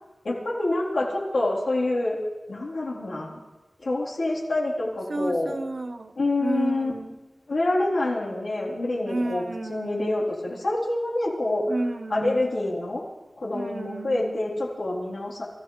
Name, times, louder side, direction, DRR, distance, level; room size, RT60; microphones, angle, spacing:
voice 1, 0.2-2.2 2.5-3.4 3.8-5.5 6.2-6.9 7.5-9.4 9.7-11.6 12.1-13.1 13.4-15.5, left 2 dB, 90° left, -5 dB, 3.9 m, -26 dB
voice 2, 5.1-7.2 9.0-10.2 11.7-12.4 13.5-14.4, right 2 dB, 55° right, 9 dB, 0.8 m, -31 dB
26.0 x 14.0 x 3.4 m, 1.2 s
wide cardioid pair, 80°, 0 cm